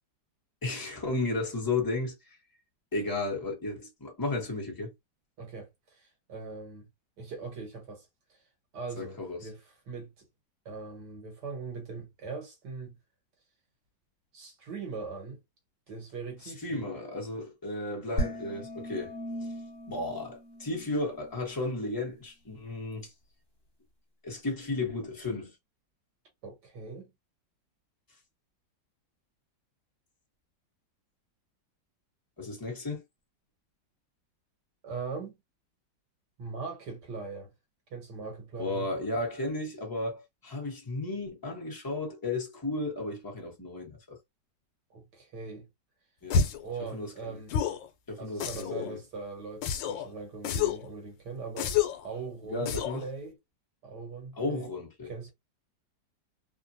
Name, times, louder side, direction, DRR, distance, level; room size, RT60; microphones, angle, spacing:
voice 1, 0.6-2.1 2.9-4.9 9.0-9.4 16.4-19.1 19.9-23.1 24.2-25.5 32.4-33.0 38.6-44.2 46.2-46.4 46.9-47.4 48.1-49.0 52.4-53.0 54.3-55.3, left 2 dB, 15° left, 0.8 m, -34 dB
voice 2, 5.4-6.9 7.2-8.4 8.7-10.3 10.7-13.0 14.3-15.4 15.9-16.9 26.4-27.1 34.8-35.4 36.4-37.5 37.9-38.9 44.9-45.7 46.6-47.5 48.2-51.8 52.0-53.4 53.8-54.7 55.0-55.3, right 4 dB, 65° right, 1.8 m, -41 dB
sound 1, 18.2-21.5, equal, 40° left, 1.6 m, -37 dB
sound 2, 46.3-46.7 47.5-47.9 48.4-48.9 49.6-50.1 50.4-50.9 51.6-52.1 52.7-53.0, left 7 dB, 85° left, 1.3 m, -29 dB
3.5 x 2.2 x 2.6 m
omnidirectional pair, 2.0 m